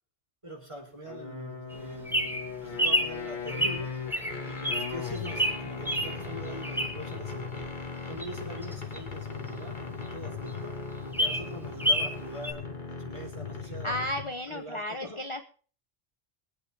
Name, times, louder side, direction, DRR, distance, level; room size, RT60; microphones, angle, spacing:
voice 1, 0.4-3.9 4.5-7.7 8.1-10.8 11.2-14.0 14.5-15.2, right 1 dB, 25° right, 1 dB, 4.2 m, -43 dB
sound 1, 1.0-14.4, left 5 dB, 45° left, 1.7 m, -38 dB
Bird vocalization bird call bird song, 1.7-7.2 7.6-9.8 10.2-10.3 10.5-10.6 10.9-12.2 12.4-12.5, equal, ahead, 2.2 m, -29 dB
voice 2, 13.8-15.4, left 1 dB, 30° left, 6 dB, 0.9 m, -33 dB
23.0 x 8.7 x 3.4 m, 0.40 s
omnidirectional pair, 1.1 m